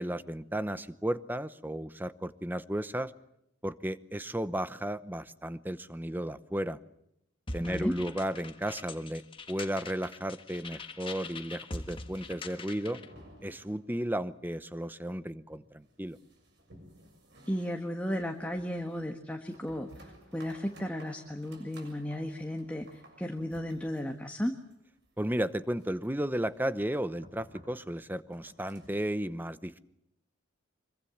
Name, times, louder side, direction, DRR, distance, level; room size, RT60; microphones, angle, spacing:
voice 1, 0.0-3.1 3.6-6.8 7.5-9.2 9.5-13.0 13.4-16.2 25.2-29.8, right 1 dB, 10° right, 14 dB, 0.8 m, -34 dB
sound 1, 7.5-13.1, left 3 dB, 25° left, 1.6 m, -43 dB
voice 2, 7.6-7.9 17.5-24.6, equal, 5° left, 4 dB, 1.5 m, -34 dB
sound 2, 12.0-14.2 14.5-14.6 14.9-15.0 15.5-29.1, right 1 dB, 55° right, 7.0 m, -57 dB
25.0 x 23.5 x 7.2 m, 0.79 s
head